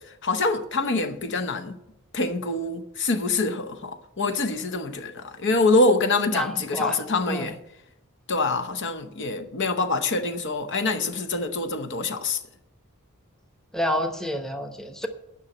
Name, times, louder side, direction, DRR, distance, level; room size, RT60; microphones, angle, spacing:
voice 1, 0.2-1.8 2.1-7.6 8.3-12.4, left 3 dB, 55° left, 0.8 m, -25 dB
voice 2, 6.3-7.0 7.3-7.5 13.7-15.1, equal, ahead, 0.9 m, -28 dB
9.5 x 6.2 x 8.6 m
head